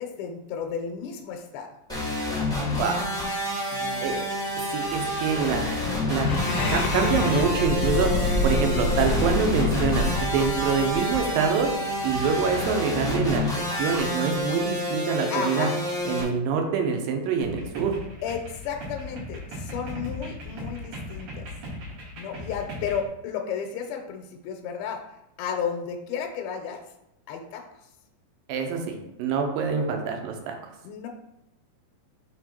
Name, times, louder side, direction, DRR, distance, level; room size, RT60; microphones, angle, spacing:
voice 1, 0.0-1.7 3.7-4.1 15.3-15.7 18.2-21.4 22.2-25.0 25.4-26.8 27.3-27.6 30.8-31.1, left 7 dB, 85° left, 3 dB, 2.5 m, -33 dB
sound 1, 1.9-16.2, left 1 dB, 5° left, 0.4 m, -29 dB
voice 2, 2.8-3.1 4.0-4.2 4.7-5.8 6.1-6.3 6.7-8.1 8.4-11.7 12.0-15.7 16.1-18.0 28.5-28.9 29.2-30.5, right 6 dB, 80° right, 4 dB, 2.5 m, -25 dB
sound 2, 6.2-11.7, left 2 dB, 70° left, 1.3 m, -27 dB
sound 3, 17.4-23.0, left 1 dB, 60° right, 2.2 m, -38 dB
5.6 x 4.5 x 4.3 m, 0.85 s
omnidirectional pair, 4.2 m